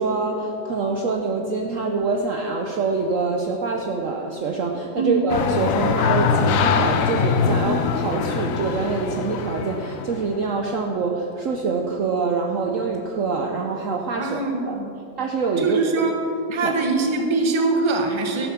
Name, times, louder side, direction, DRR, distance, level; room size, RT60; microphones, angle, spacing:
voice 1, 0.0-14.8 15.2-15.8 16.6-16.7, right 4 dB, 60° right, 2 dB, 0.9 m, -25 dB
sound 1, 5.3-10.4, left 6 dB, 65° left, 0.8 m, -22 dB
voice 2, 14.2-14.9 15.6-16.2 16.5-18.5, right 3 dB, 20° right, 3 dB, 0.9 m, -22 dB
14.0 x 7.5 x 5.8 m, 2.8 s
omnidirectional pair, 1.9 m